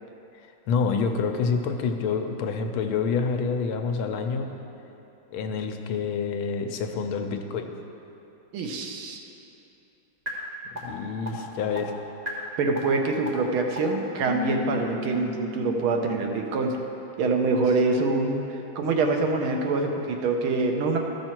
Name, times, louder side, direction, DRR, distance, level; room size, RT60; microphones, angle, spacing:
voice 1, 0.7-4.5 5.3-7.7 10.8-11.9, left 5 dB, 80° left, 5 dB, 1.5 m, -27 dB
voice 2, 8.5-9.2 12.6-16.8 17.2-21.0, right 3 dB, 80° right, 2 dB, 1.7 m, -25 dB
sound 1, 10.3-10.4 10.8-10.9 11.3-11.4 11.8-11.9 12.3-12.4 12.8-12.9 13.3-13.4 13.8-13.9 14.3-16.0, left 2 dB, 25° right, 1.3 m, -35 dB
13.0 x 6.1 x 4.4 m, 2.9 s
omnidirectional pair, 2.3 m